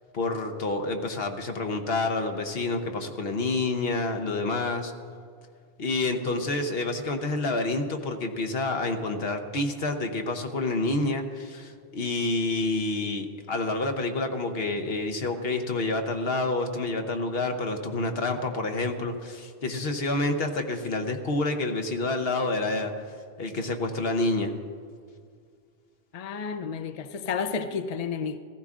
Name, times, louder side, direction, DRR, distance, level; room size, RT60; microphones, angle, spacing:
voice 1, 0.1-4.9 5.8-22.9 23.4-24.5, left 2 dB, 70° left, 6 dB, 1.2 m, -28 dB
voice 2, 26.1-28.4, left 6 dB, 45° left, 9 dB, 0.5 m, -31 dB
15.5 x 15.0 x 3.7 m, 2.1 s
omnidirectional pair, 1.1 m